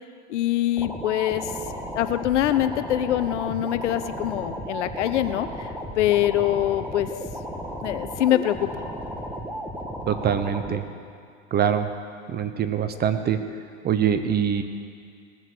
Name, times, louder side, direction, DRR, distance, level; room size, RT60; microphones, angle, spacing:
voice 1, 0.3-1.5 1.9-7.1 7.8-8.7, left 13 dB, 80° left, 11 dB, 0.8 m, -24 dB
sound 1, 0.8-10.8, equal, 5° right, 1.7 m, -34 dB
voice 2, 10.1-10.8 11.5-11.9 12.3-13.4 13.8-14.6, right 8 dB, 25° right, 9 dB, 1.0 m, -23 dB
19.0 x 7.4 x 6.9 m, 2.3 s
hypercardioid pair, 105°, 35 cm